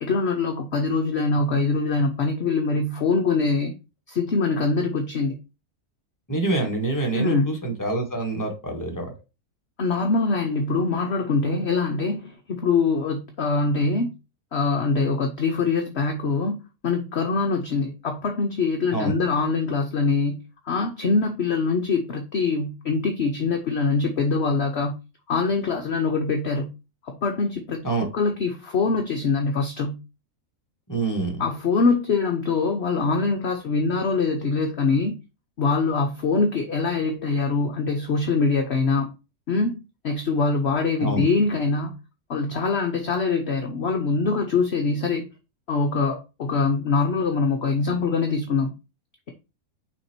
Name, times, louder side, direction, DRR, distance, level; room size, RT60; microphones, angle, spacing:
voice 1, 0.0-3.7 4.1-5.4 7.1-7.6 9.8-14.1 14.5-16.6 16.8-25.0 25.3-26.7 27.1-27.8 28.1-30.0 31.4-35.1 35.6-39.1 39.5-41.9 42.3-45.3 45.7-48.7, left 4 dB, 55° left, 0.9 m, -23 dB
voice 2, 6.3-9.1 18.9-19.1 27.8-28.1 30.9-31.4 41.0-41.2, right 2 dB, 15° left, 1.5 m, -26 dB
6.0 x 3.6 x 4.4 m
omnidirectional pair, 1.6 m